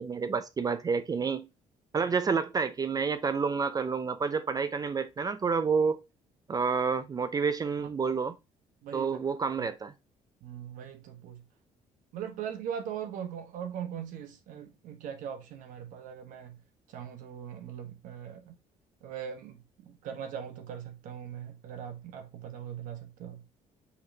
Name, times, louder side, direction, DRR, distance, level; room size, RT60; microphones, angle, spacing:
voice 1, 0.0-1.5 1.9-6.0 6.5-8.3 8.9-9.9, right 5 dB, 30° right, 0.4 m, -29 dB
voice 2, 7.8-8.1 8.8-9.2 9.6-9.7 10.4-11.4 12.1-16.6 16.9-18.5 19.0-23.4, right 8 dB, 80° right, 1.0 m, -40 dB
5.7 x 3.2 x 2.6 m
cardioid pair, 100°, 13 cm